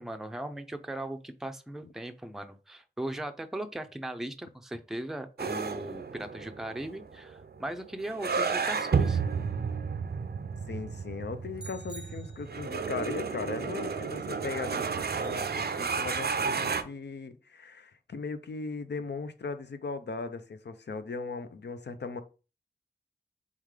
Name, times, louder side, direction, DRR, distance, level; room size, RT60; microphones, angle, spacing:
voice 1, 0.0-9.2, right 1 dB, ahead, 0.4 m, -38 dB
sound 1, 5.4-16.8, right 5 dB, 65° right, 0.5 m, -32 dB
voice 2, 10.7-22.2, left 4 dB, 75° left, 0.5 m, -38 dB
sound 2, 11.6-12.9, right 2 dB, 25° left, 1.0 m, -49 dB
3.6 x 3.6 x 3.2 m
wide cardioid pair, 50°, 18 cm